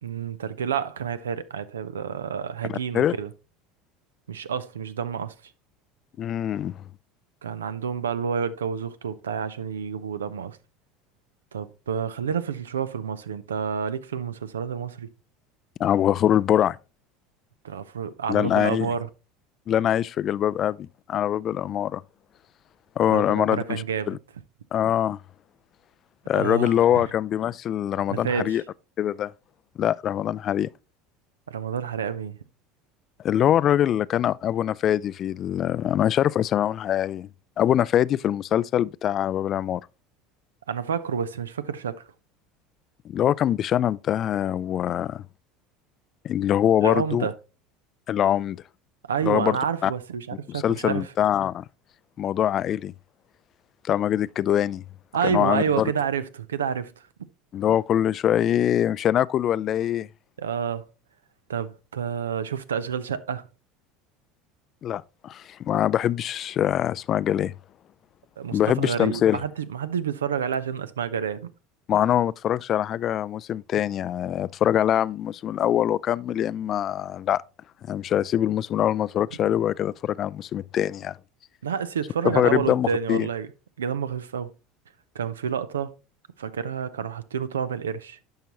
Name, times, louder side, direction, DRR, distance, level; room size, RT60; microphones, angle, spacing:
voice 1, 0.0-3.3 4.3-5.3 7.4-10.6 11.5-15.1 17.6-19.1 23.1-24.2 26.3-27.1 28.1-28.6 31.5-32.4 40.7-42.0 46.8-47.3 49.1-51.1 55.1-57.0 60.4-60.9 61.5-63.5 68.4-71.5 81.6-83.5 83.8-84.5 85.1-86.0 86.4-88.2, right 7 dB, 85° right, 0.5 m, -29 dB
voice 2, 2.7-3.1 6.2-6.7 15.8-16.8 18.3-18.9 19.7-22.0 23.0-24.2 24.7-25.2 26.3-28.6 29.0-29.3 29.8-30.7 33.2-37.3 37.6-39.8 43.1-45.2 46.2-47.3 48.1-48.6 49.2-49.6 49.8-49.9 50.5-51.6 52.2-52.9 53.9-54.8 55.2-55.9 57.5-60.1 64.8-67.5 68.5-69.4 71.9-77.4 77.9-81.2 82.2-83.3, left 10 dB, 45° left, 0.3 m, -23 dB
10.5 x 5.6 x 2.9 m
hypercardioid pair, 75°, 0 cm